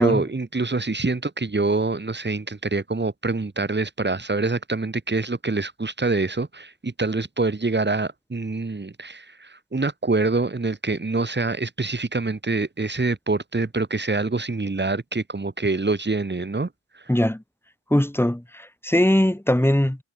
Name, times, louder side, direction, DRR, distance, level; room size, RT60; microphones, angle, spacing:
voice 1, 0.0-17.1, right 3 dB, 25° right, 3.4 m, -25 dB
voice 2, 17.1-17.4 17.9-20.0, left 1 dB, 5° left, 4.6 m, -20 dB
wide cardioid pair, 130°, 45 cm